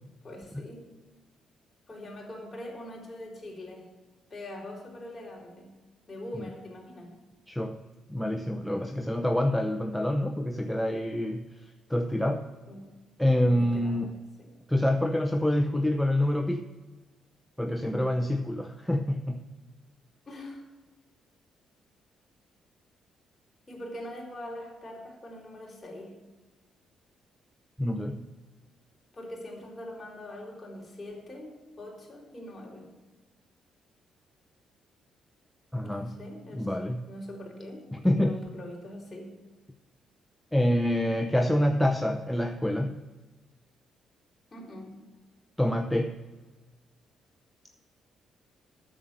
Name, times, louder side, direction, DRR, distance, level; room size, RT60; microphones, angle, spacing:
voice 1, 0.2-0.9 1.9-3.9 4.3-5.8 6.1-7.2 12.7-12.9 13.4-14.5 17.7-18.1 20.3-20.6 23.7-26.2 29.1-32.9 35.8-39.3 44.5-45.0, left 1 dB, 25° left, -1 dB, 3.8 m, -43 dB
voice 2, 7.5-7.8 8.1-11.5 11.9-12.5 13.2-14.2 14.7-16.7 17.6-19.5 27.8-28.2 35.7-36.2 36.5-37.1 37.9-38.4 40.5-42.9 45.6-46.2, left 1 dB, 5° left, 5 dB, 0.7 m, -26 dB
8.9 x 6.9 x 8.0 m, 1.3 s
cardioid pair, 90°, 0 cm